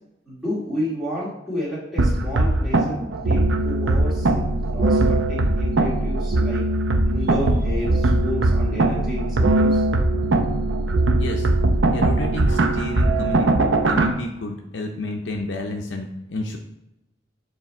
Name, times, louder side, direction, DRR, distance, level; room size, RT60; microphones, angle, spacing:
voice 1, 0.3-4.4 4.7-6.6 7.0-9.8, left 1 dB, 5° right, -11 dB, 2.1 m, -31 dB
sound 1, 2.0-14.1, right 2 dB, 80° right, 0.6 m, -20 dB
voice 2, 11.2-11.5 11.9-13.5 13.8-16.6, left 2 dB, 70° left, 3 dB, 0.6 m, -30 dB
7.2 x 3.3 x 4.3 m, 0.90 s
head